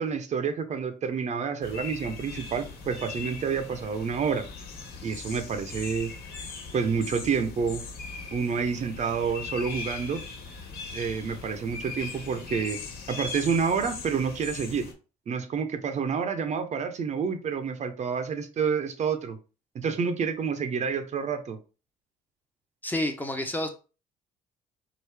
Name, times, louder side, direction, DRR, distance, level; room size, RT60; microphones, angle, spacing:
voice 1, 0.0-4.5 5.0-6.1 6.7-7.8 8.3-10.2 10.9-12.8 13.1-14.9 15.3-19.4 19.7-21.6, right 6 dB, 45° right, 8 dB, 0.7 m, -28 dB
sound 1, 1.6-14.9, left 4 dB, 65° left, 1.3 m, -40 dB
voice 2, 22.8-23.7, left 1 dB, 10° left, 4 dB, 0.7 m, -29 dB
4.7 x 2.5 x 3.3 m, 0.34 s
cardioid pair, 110°, 17 cm